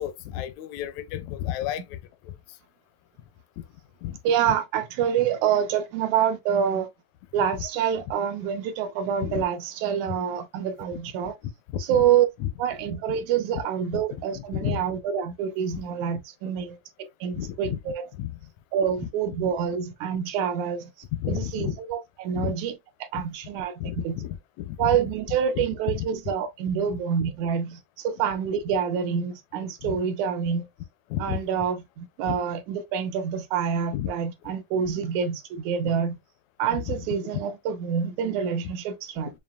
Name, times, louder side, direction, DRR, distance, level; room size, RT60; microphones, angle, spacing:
voice 1, 0.0-2.0 2.3-2.4 4.0-4.2 4.5-4.6 9.2-9.4 11.9-12.0 12.4-12.5 13.9-14.0 14.4-14.8 15.7-15.8 17.3-17.8 18.2-18.3 21.1-21.7 22.4-22.5 23.8-25.0 25.6-26.0 29.8-30.0 31.1-31.4 32.2-32.4 33.9-34.1 34.8-34.9 35.8-35.9 36.7-37.3, left 12 dB, 80° left, 1.9 m, -32 dB
voice 2, 4.2-6.9 7.3-11.3 11.9-12.3 12.6-16.8 17.2-18.1 18.7-20.9 21.3-22.8 23.0-24.2 24.8-30.7 31.2-36.2 36.6-39.3, right 8 dB, 85° right, 2.2 m, -27 dB
7.1 x 2.5 x 2.4 m
omnidirectional pair, 3.3 m